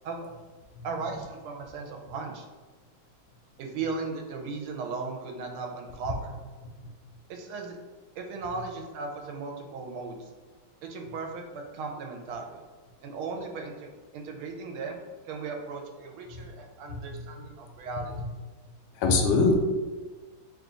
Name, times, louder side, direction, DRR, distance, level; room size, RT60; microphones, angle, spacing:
voice 1, 0.8-2.5 3.6-6.3 7.3-7.8 8.2-10.3 10.8-12.6 13.0-18.1, right 4 dB, 90° right, 2 dB, 1.5 m, -37 dB
voice 2, 16.9-17.2 18.9-19.5, left 4 dB, 85° left, 3 dB, 1.4 m, -25 dB
3.5 x 2.4 x 3.8 m, 1.3 s
omnidirectional pair, 2.3 m